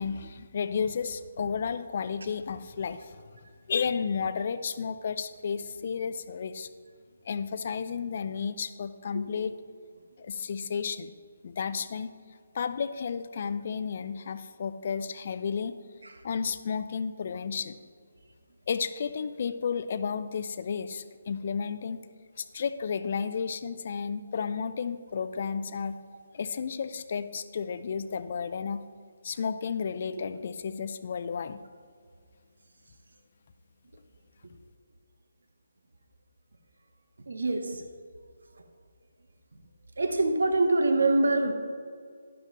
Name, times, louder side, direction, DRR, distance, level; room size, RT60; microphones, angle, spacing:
voice 1, 0.0-3.1 3.7-6.7 7.3-9.5 10.2-11.1 11.4-12.1 12.5-15.8 16.2-17.8 18.7-22.0 22.4-26.0 26.3-28.9 29.2-31.6, left 6 dB, 50° left, 12 dB, 0.5 m, -32 dB
voice 2, 37.3-37.8 40.0-41.5, right 2 dB, 75° right, 6 dB, 1.1 m, -24 dB
11.5 x 11.0 x 3.1 m, 2.1 s
figure-of-eight pair, 150°, 0 cm